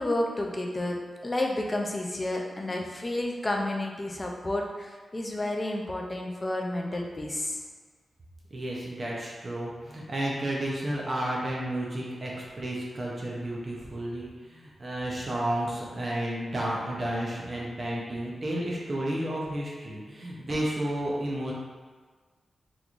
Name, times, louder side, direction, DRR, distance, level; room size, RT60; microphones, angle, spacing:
voice 1, 0.0-7.6, left 1 dB, 20° left, 1 dB, 0.4 m, -31 dB
voice 2, 8.5-21.5, right 1 dB, 35° right, -4 dB, 0.5 m, -32 dB
3.7 x 2.9 x 2.4 m, 1.5 s
wide cardioid pair, 170°, 0 cm